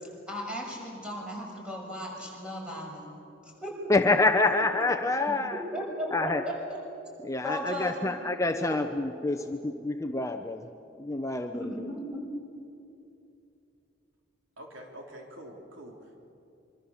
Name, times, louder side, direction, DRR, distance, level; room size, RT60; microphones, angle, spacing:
voice 1, 0.3-3.0 3.4-3.7 4.2-4.5 5.5-6.8 7.4-8.2 11.5-12.2, equal, 5° right, -2 dB, 6.4 m, -36 dB
voice 2, 3.9-5.6 6.1-6.4 7.2-10.6 11.0-11.6, left 2 dB, 15° left, 6 dB, 0.7 m, -27 dB
voice 3, 14.6-16.3, equal, 80° right, 1 dB, 3.7 m, -46 dB
25.5 x 25.0 x 7.2 m, 2.7 s
head